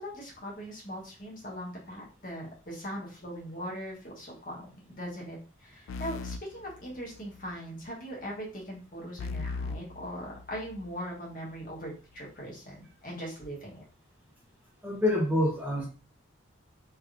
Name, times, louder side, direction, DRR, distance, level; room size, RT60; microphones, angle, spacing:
voice 1, 0.0-13.9, equal, 40° left, -3 dB, 1.2 m, -40 dB
sound 1, 5.9-7.5 9.2-10.9, left 4 dB, 85° left, 0.3 m, -39 dB
voice 2, 14.8-15.9, left 1 dB, 5° right, -4 dB, 0.7 m, -26 dB
3.4 x 3.0 x 2.4 m, 0.35 s
head